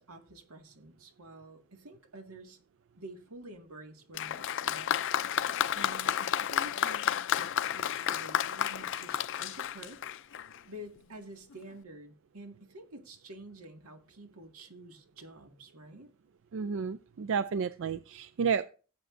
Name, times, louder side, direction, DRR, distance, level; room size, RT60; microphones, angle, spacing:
voice 1, 0.0-2.6 3.0-10.0 10.7-16.1, right 1 dB, 90° right, 1.9 m, -49 dB
Applause, 4.1-10.6 11.5-11.6, left 9 dB, 60° left, 0.4 m, -31 dB
voice 2, 16.5-18.7, right 6 dB, 60° right, 0.4 m, -31 dB
17.0 x 7.9 x 2.6 m
head